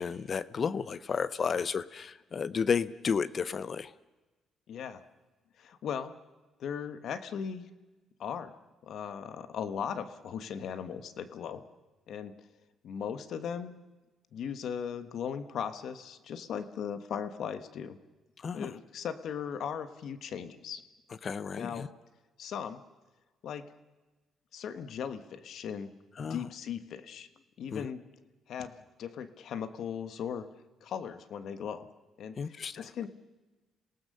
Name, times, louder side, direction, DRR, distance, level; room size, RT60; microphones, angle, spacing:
voice 1, 0.0-3.9 18.4-18.7 21.2-21.9 26.2-26.5 27.7-27.9 32.4-32.9, left 6 dB, 45° left, 17 dB, 0.7 m, -32 dB
voice 2, 4.7-5.0 5.6-6.1 6.6-7.7 8.2-8.5 8.8-11.6 12.1-12.3 12.8-13.7 14.3-18.0 18.5-20.8 21.6-21.9 22.4-22.8 23.4-23.7 24.5-25.9 26.2-27.3 27.6-28.0 28.5-30.5 30.8-31.9 32.2-33.1, left 7 dB, 70° left, 11 dB, 1.3 m, -38 dB
27.5 x 18.0 x 6.7 m, 1.2 s
cardioid pair, 90°, 0 cm